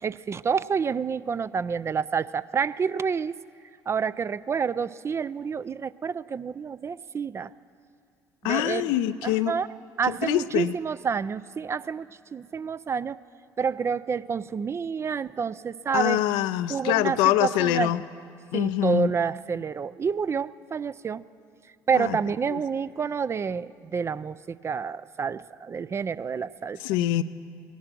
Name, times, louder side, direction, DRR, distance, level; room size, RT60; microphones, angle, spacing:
voice 1, 0.0-3.4 3.9-7.5 8.4-8.9 9.2-9.7 10.0-13.2 13.6-16.4 16.7-17.9 18.5-21.2 21.9-26.8, right 6 dB, 35° right, 17 dB, 0.4 m, -28 dB
voice 2, 8.4-9.5 10.1-10.7 15.9-18.0 18.5-19.1 21.9-22.2 22.5-22.6 26.8-27.2, left 14 dB, 80° left, 13 dB, 0.4 m, -24 dB
19.0 x 11.0 x 6.0 m, 2.4 s
supercardioid pair, 70°, 8 cm